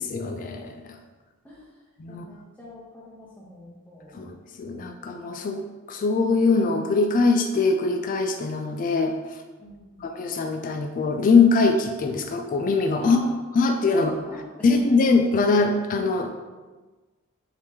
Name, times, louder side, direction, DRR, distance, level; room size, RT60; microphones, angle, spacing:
voice 1, 0.1-1.0 2.0-2.2 4.1-9.1 10.0-13.2 13.6-14.1 14.6-16.3, left 4 dB, 35° left, 5 dB, 0.3 m, -22 dB
voice 2, 1.4-4.3 9.6-10.1 13.0-13.3 13.9-14.8, left 1 dB, 5° left, -6 dB, 0.6 m, -42 dB
4.7 x 2.9 x 3.4 m, 1.3 s
head